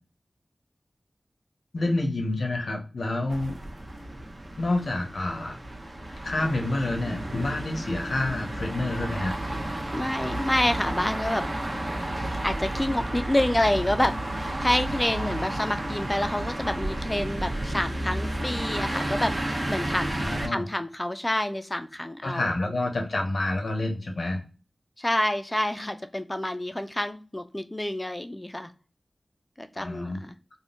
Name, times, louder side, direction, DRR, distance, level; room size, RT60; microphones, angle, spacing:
voice 1, 1.7-3.6 4.6-5.6 6.2-9.3 20.1-20.6 22.2-24.4 29.8-30.2, left 2 dB, 75° left, 2 dB, 0.7 m, -28 dB
sound 1, 3.3-20.5, right 1 dB, 40° right, 0.7 m, -32 dB
voice 2, 9.9-11.5 12.4-22.5 25.0-28.7 29.6-30.4, left 1 dB, 20° left, 8 dB, 0.4 m, -28 dB
3.6 x 2.1 x 2.4 m, 0.35 s
wide cardioid pair, 55°, 0 cm